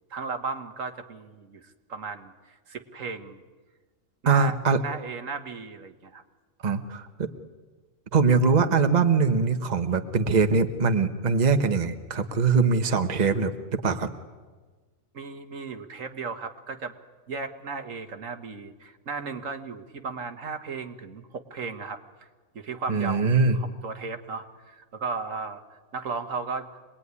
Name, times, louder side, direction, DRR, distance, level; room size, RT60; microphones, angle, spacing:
voice 1, 0.1-3.4 4.2-6.2 15.1-17.0 17.3-22.0 22.6-26.7, right 4 dB, 75° right, 6 dB, 1.8 m, -35 dB
voice 2, 4.3-4.8 6.6-7.3 8.1-14.1 22.9-23.6, right 4 dB, 35° right, 7 dB, 1.2 m, -22 dB
26.0 x 20.0 x 9.7 m, 1.4 s
omnidirectional pair, 1.4 m